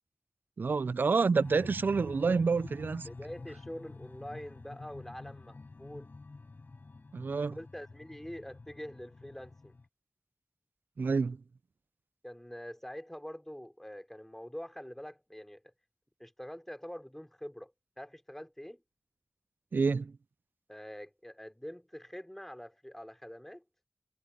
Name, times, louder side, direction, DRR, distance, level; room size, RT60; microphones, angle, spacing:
voice 1, 0.6-3.1 7.1-7.6 11.0-11.4 19.7-20.1, right 4 dB, 85° right, 0.3 m, -28 dB
sound 1, 1.4-9.9, left 3 dB, 70° left, 6.1 m, -48 dB
voice 2, 3.0-6.1 7.5-9.7 12.2-15.6 16.2-18.8 20.7-23.6, equal, 10° left, 3.0 m, -45 dB
wide cardioid pair, 65°, 3 cm